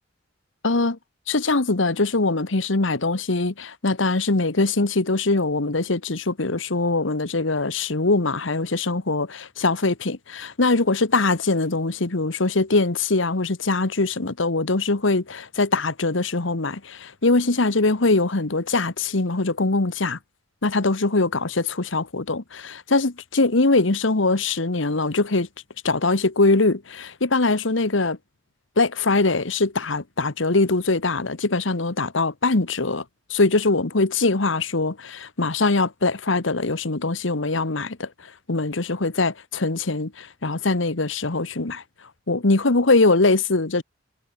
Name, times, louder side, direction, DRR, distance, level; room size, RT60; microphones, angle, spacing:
voice 1, 0.6-1.0 1.3-20.2 20.6-25.5 25.8-28.2 28.8-33.0 33.3-38.1 38.5-41.8 42.3-43.8, left 3 dB, 75° left, 1.4 m, -22 dB
head